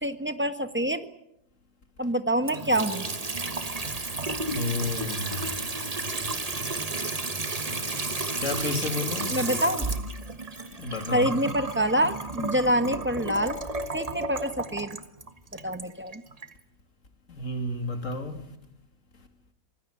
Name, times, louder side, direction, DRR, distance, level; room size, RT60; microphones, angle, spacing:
voice 1, 0.0-1.1 2.0-3.1 9.3-9.9 11.1-13.6 13.9-14.9 15.6-16.2, right 1 dB, 10° right, 1.4 m, -26 dB
Water tap faucet / Sink (filling or washing) / Trickle dribble, 2.4-16.5, right 3 dB, 25° right, 1.4 m, -32 dB
voice 2, 4.5-5.5 8.4-9.4 10.8-11.3 17.3-18.4, left 2 dB, 55° left, 2.8 m, -31 dB
25.5 x 20.0 x 8.5 m
omnidirectional pair, 1.6 m